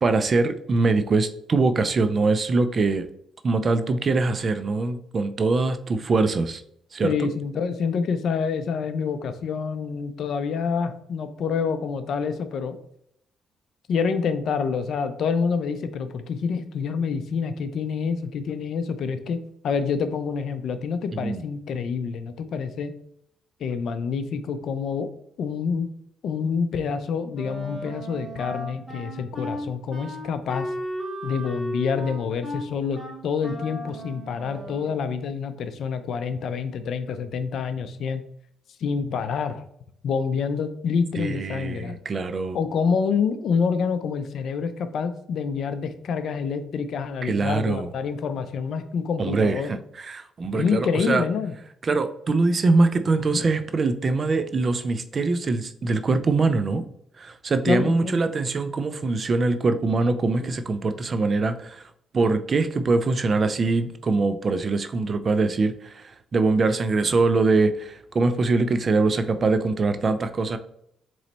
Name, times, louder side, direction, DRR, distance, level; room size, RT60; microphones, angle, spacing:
voice 1, 0.0-3.1 3.4-6.6 6.9-7.1 21.1-21.4 41.2-42.6 47.2-47.9 49.2-51.3 51.8-56.8 57.2-61.8 62.1-70.6, right 3 dB, 40° right, 10 dB, 0.4 m, -23 dB
voice 2, 7.0-12.8 13.9-19.4 19.6-22.9 23.6-25.1 25.4-25.9 26.2-30.7 31.2-38.2 38.8-39.6 40.0-42.0 42.5-49.7 50.5-51.5 53.3-53.5 57.7-58.2 60.4-60.5, left 6 dB, 65° left, 11 dB, 0.5 m, -27 dB
Wind instrument woodwind instrument, 27.3-34.9, equal, 10° right, 1.7 m, -34 dB
4.1 x 3.1 x 4.0 m, 0.71 s
cardioid pair, 90°, 0 cm